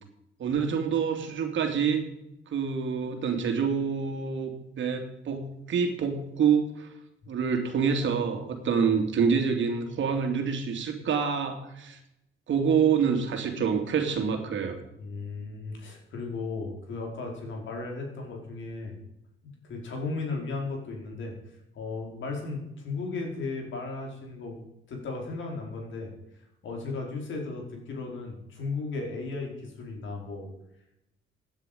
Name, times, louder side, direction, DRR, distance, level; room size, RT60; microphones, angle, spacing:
voice 1, 0.4-2.0 2.5-4.5 4.8-6.9 7.3-12.0 12.5-14.8, right 6 dB, 65° right, 5 dB, 2.8 m, -26 dB
voice 2, 15.0-19.0 19.4-21.3 21.7-24.6 24.9-26.1 26.6-30.5, left 3 dB, 65° left, 1 dB, 5.0 m, -35 dB
16.0 x 9.8 x 5.3 m, 0.85 s
cardioid pair, 80°, 21 cm